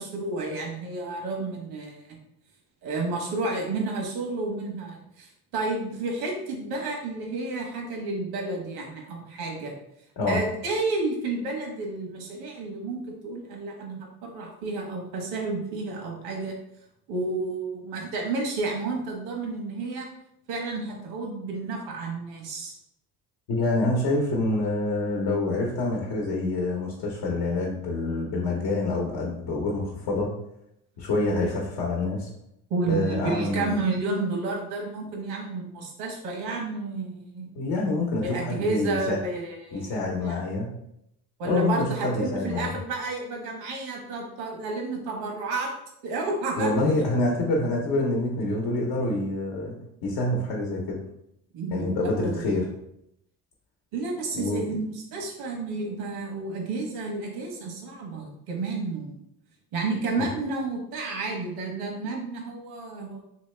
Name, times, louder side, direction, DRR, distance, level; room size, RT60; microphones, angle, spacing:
voice 1, 0.0-2.2 2.8-9.7 10.3-16.5 17.1-20.1 20.5-22.7 32.7-37.5 38.2-39.9 40.2-40.4 41.4-45.7 46.0-46.7 47.3-47.4 51.5-52.5 53.9-59.2 59.7-63.2, right 3 dB, 85° right, 1 dB, 1.0 m, -31 dB
voice 2, 23.5-30.3 31.0-32.3 32.9-33.7 37.5-39.2 39.7-40.7 41.4-42.7 46.6-49.8 50.0-51.0 51.7-52.6 54.3-54.6 60.2-60.3, left 2 dB, 70° left, -1 dB, 0.9 m, -26 dB
3.1 x 2.8 x 3.2 m, 0.78 s
cardioid pair, 100°, 37 cm